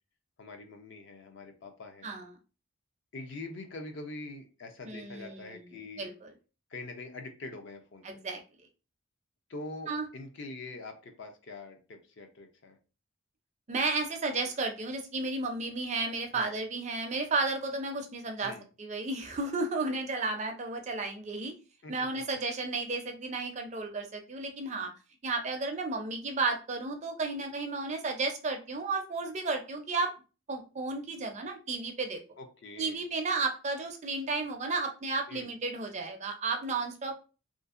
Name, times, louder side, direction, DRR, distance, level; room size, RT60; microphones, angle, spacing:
voice 1, 0.4-2.1 3.1-6.1 6.7-8.0 9.5-12.8 16.3-16.5 18.4-18.7 21.8-22.2 32.4-33.0 35.3-35.5, left 2 dB, 55° left, 6 dB, 0.5 m, -44 dB
voice 2, 4.9-5.6 6.0-6.3 8.0-8.4 9.9-10.1 13.7-18.5 18.8-21.5 21.9-24.9 25.2-30.1 30.5-32.2 32.8-37.1, right 3 dB, 30° right, 5 dB, 0.4 m, -33 dB
2.7 x 2.5 x 2.4 m, 0.33 s
head